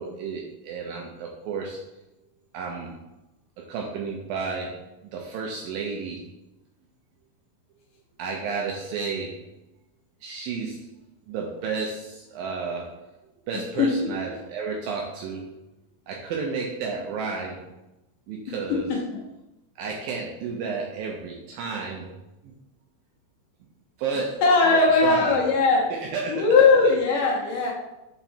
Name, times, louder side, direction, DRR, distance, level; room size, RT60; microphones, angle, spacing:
voice 1, 0.0-1.8 2.5-3.0 3.7-6.2 8.2-9.4 10.2-10.9 11.3-13.1 13.5-15.5 16.1-17.7 18.3-18.9 19.8-22.2 22.4-22.5 24.0-25.4 26.1-26.5 26.8-26.9, right 5 dB, 80° right, 0 dB, 2.1 m, -32 dB
voice 2, 13.7-14.1 18.5-19.2 24.4-27.7, left 4 dB, 70° left, -2 dB, 2.1 m, -20 dB
5.8 x 4.6 x 4.2 m, 0.95 s
omnidirectional pair, 4.8 m